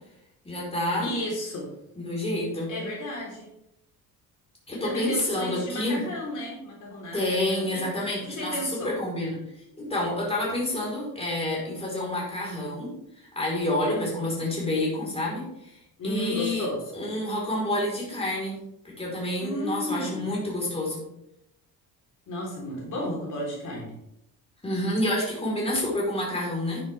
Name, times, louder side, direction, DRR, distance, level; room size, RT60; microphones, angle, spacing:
voice 1, 0.4-1.1 2.0-2.7 4.7-6.0 7.1-9.4 9.8-12.9 13.2-15.8 16.0-16.6 16.9-18.6 18.8-21.0 24.6-26.8, left 1 dB, 15° left, -4 dB, 4.6 m, -28 dB
voice 2, 1.0-1.7 2.7-3.5 4.7-9.0 13.9-14.0 16.0-16.8 19.4-20.3 22.3-23.9, left 1 dB, 50° left, -3 dB, 4.2 m, -33 dB
10.5 x 10.0 x 3.6 m, 0.81 s
cardioid pair, 130°, 39 cm